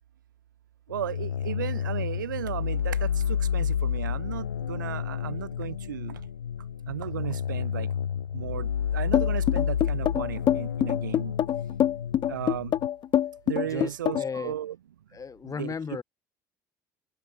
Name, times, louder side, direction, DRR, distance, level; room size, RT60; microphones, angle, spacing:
sound 1, 0.9-12.9, left 8 dB, 90° left, 1.7 m, -30 dB
voice 1, 0.9-6.2 6.9-7.9 8.3-11.3 12.3-12.7 13.5-14.8 15.4-15.7, right 11 dB, 85° right, 2.6 m, -35 dB
sound 2, 9.1-14.4, left 11 dB, 50° left, 1.9 m, -25 dB
voice 2, 13.7-14.5 15.1-16.0, left 6 dB, 35° left, 5.3 m, -35 dB
hypercardioid pair, 60°, 10 cm